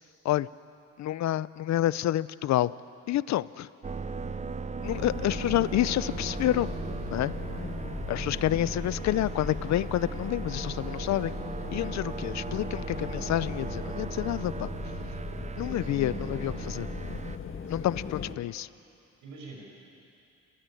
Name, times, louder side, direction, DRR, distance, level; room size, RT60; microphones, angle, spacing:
voice 1, 1.0-2.7 3.1-3.7 4.8-6.7 7.1-7.3 8.1-11.4 11.7-14.7 15.6-16.9 17.7-18.7, left 13 dB, 65° left, 18 dB, 0.6 m, -28 dB
sound 1, 3.8-17.4, right 4 dB, 25° right, 0.6 m, -37 dB
sound 2, 4.8-18.4, left 6 dB, 45° left, 1.6 m, -39 dB
voice 2, 7.9-8.6 15.6-16.6 17.6-18.3 19.2-19.6, right 2 dB, 80° right, -1 dB, 6.8 m, -44 dB
30.0 x 14.5 x 9.2 m, 2.6 s
cardioid pair, 90°, 30 cm